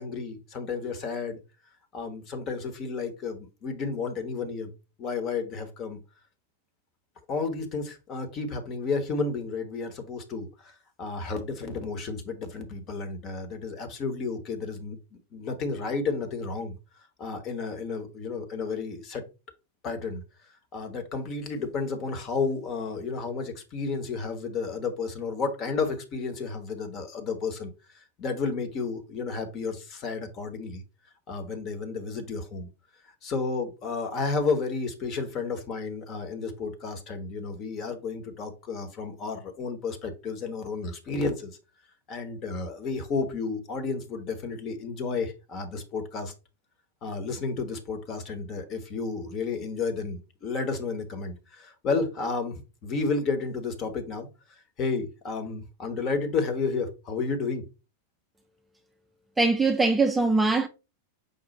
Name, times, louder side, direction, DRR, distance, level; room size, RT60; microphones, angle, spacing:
voice 1, 0.0-1.4 1.9-6.0 7.3-15.0 15.3-16.8 17.2-19.2 19.8-20.2 20.7-27.7 27.9-30.8 31.3-32.7 33.2-41.6 42.1-46.3 47.0-54.3 54.8-57.6, left 4 dB, 35° left, 1.1 m, -32 dB
voice 2, 59.4-60.7, right 3 dB, 10° right, 0.4 m, -22 dB
5.3 x 2.4 x 4.1 m
figure-of-eight pair, 90°, 0 cm